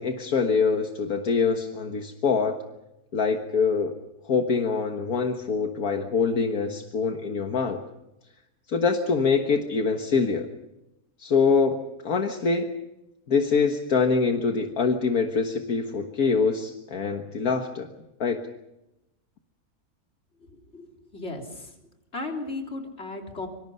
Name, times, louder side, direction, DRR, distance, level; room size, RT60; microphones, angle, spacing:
voice 1, 0.0-2.6 3.1-4.0 4.3-7.8 8.7-10.5 11.2-11.8 12.0-12.7 13.3-17.9 18.2-18.4, left 5 dB, 70° left, 4 dB, 1.9 m, -24 dB
voice 2, 20.5-21.7 22.1-23.5, left 2 dB, 45° left, 2 dB, 3.9 m, -35 dB
26.0 x 24.5 x 5.6 m, 0.92 s
omnidirectional pair, 1.6 m